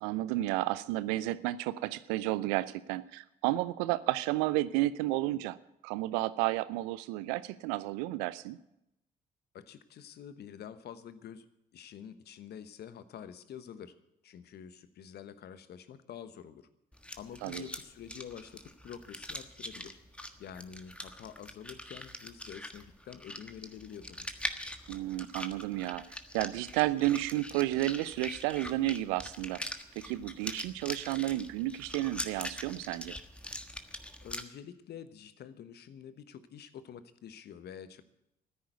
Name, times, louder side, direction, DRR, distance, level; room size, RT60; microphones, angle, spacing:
voice 1, 0.0-5.6 5.8-8.6 17.4-17.7 24.9-26.1 26.3-29.6 30.0-33.2, right 16 dB, 70° right, 17 dB, 0.6 m, -32 dB
voice 2, 9.5-11.4 11.7-13.9 14.2-16.7 17.2-20.0 20.4-24.3 34.2-38.0, left 8 dB, 55° left, 13 dB, 1.1 m, -47 dB
sound 1, 16.9-34.4, left 1 dB, 5° left, 1.4 m, -43 dB
14.0 x 10.0 x 8.1 m, 0.83 s
figure-of-eight pair, 45°, 20 cm